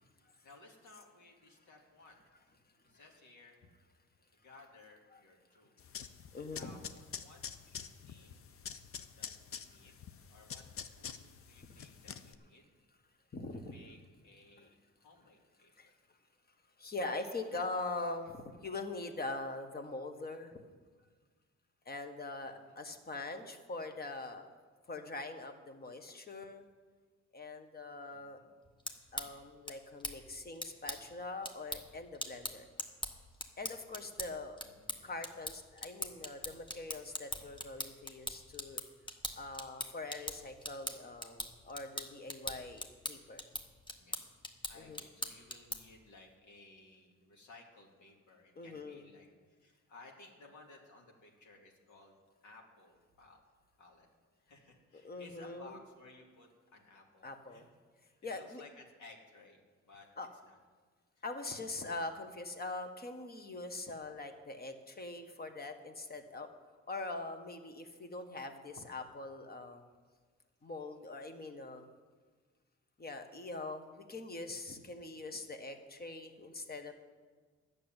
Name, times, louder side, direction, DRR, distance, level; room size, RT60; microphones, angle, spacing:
voice 1, 0.4-2.3 2.8-3.6 4.3-5.8 6.5-8.4 9.2-10.0 10.3-10.6 10.9-12.7 13.5-14.0 14.2-15.9 22.4-22.8 28.1-28.5 34.6-35.5 43.9-44.3 44.7-52.1 52.4-53.4 53.8-54.1 54.4-57.7 58.0-60.1 60.4-60.6 61.2-61.3 73.3-73.6, left 3 dB, 75° left, 0 dB, 2.5 m, -59 dB
sound 1, 5.8-12.3, left 7 dB, 50° left, 0.7 m, -47 dB
voice 2, 6.3-6.7 13.3-13.7 15.8-15.9 16.8-20.5 21.8-24.5 24.9-26.7 27.3-28.4 29.1-32.7 33.6-34.6 35.0-38.8 39.4-43.4 44.7-45.0 48.6-49.0 54.9-55.8 57.2-57.6 58.2-58.6 60.2-60.3 61.2-66.5 66.9-69.8 70.6-71.9 73.0-76.9, left 2 dB, 30° left, 7 dB, 1.4 m, -43 dB
sound 2, 28.6-46.0, left 1 dB, 15° left, 1.1 m, -43 dB
11.5 x 6.8 x 8.9 m, 1.5 s
cardioid pair, 90°, 30 cm